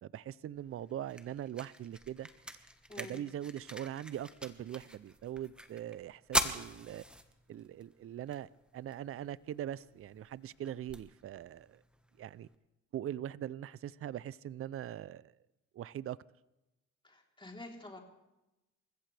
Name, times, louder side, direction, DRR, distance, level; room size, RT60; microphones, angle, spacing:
voice 1, 0.0-2.3 3.0-7.0 7.5-11.8 12.2-12.5 12.9-15.3 15.7-16.2, right 11 dB, 50° right, 0.5 m, -41 dB
sound 1, 0.6-12.6, equal, 5° right, 1.4 m, -42 dB
voice 2, 2.9-3.2 17.0-18.0, left 2 dB, 15° left, 3.6 m, -48 dB
28.5 x 15.0 x 3.4 m
cardioid pair, 90°, 30 cm